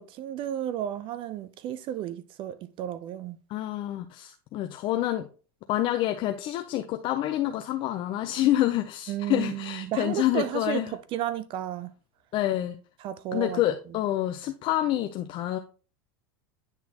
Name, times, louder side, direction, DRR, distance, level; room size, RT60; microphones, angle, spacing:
voice 1, 0.0-3.4 9.1-11.9 13.0-13.6 13.9-14.0, right 11 dB, 40° right, 0.5 m, -33 dB
voice 2, 3.5-5.3 5.7-10.9 12.3-12.8 13.3-15.6, left 13 dB, 45° left, 0.5 m, -27 dB
9.5 x 4.1 x 2.8 m
supercardioid pair, 115°, 13 cm